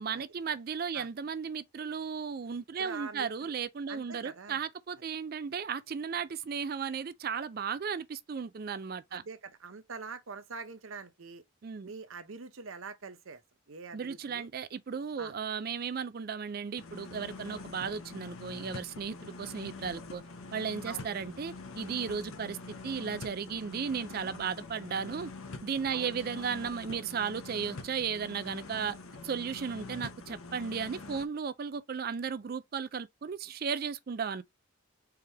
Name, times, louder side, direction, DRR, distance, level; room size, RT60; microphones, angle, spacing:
voice 1, 0.0-9.2 11.6-11.9 13.9-20.2 20.5-22.6 22.8-25.3 25.6-29.0 29.2-34.4, right 6 dB, 45° right, 0.4 m, -35 dB
voice 2, 2.8-3.5 3.9-4.6 9.1-11.4 11.8-13.4 13.7-14.5 15.2-15.3 20.9-21.1 25.9-26.2, right 4 dB, 70° right, 0.8 m, -44 dB
sound 1, 16.8-31.3, left 3 dB, 80° left, 0.9 m, -45 dB
4.7 x 3.3 x 3.4 m
head